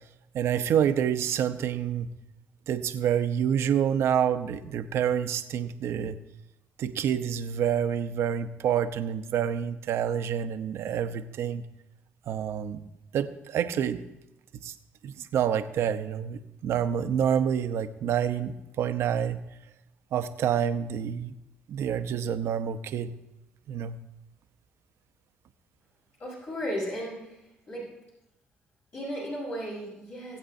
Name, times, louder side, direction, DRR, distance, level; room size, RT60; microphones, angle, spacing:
voice 1, 0.3-2.1 2.7-6.2 6.8-11.6 12.3-12.8 13.1-14.0 14.5-14.7 15.0-19.4 20.1-21.4 21.7-23.1 23.7-24.0, right 8 dB, 70° right, 9 dB, 0.7 m, -28 dB
voice 2, 26.2-27.4 27.7-27.9 28.9-30.4, equal, 55° left, -6 dB, 4.4 m, -35 dB
20.0 x 7.9 x 2.7 m, 0.90 s
cardioid pair, 80°, 5 cm